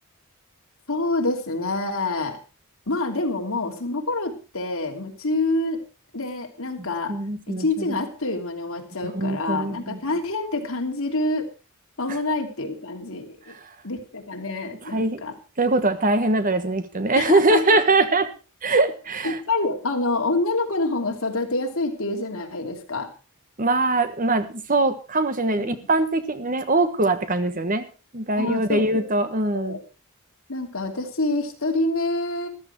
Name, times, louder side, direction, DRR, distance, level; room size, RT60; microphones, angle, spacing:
voice 1, 0.9-2.4 2.9-5.8 6.1-7.1 7.5-11.5 12.0-13.5 13.8-15.3 17.1-17.8 19.2-23.1 25.6-25.8 28.3-29.1 29.5-29.8 30.5-32.5, left 2 dB, 70° left, 3 dB, 3.0 m, -27 dB
voice 2, 7.1-7.8 9.1-10.0 14.9-15.2 15.6-18.3 18.6-19.4 23.6-27.8 28.1-29.8, right 2 dB, 40° right, 10 dB, 1.3 m, -22 dB
14.0 x 12.5 x 4.6 m, 0.33 s
head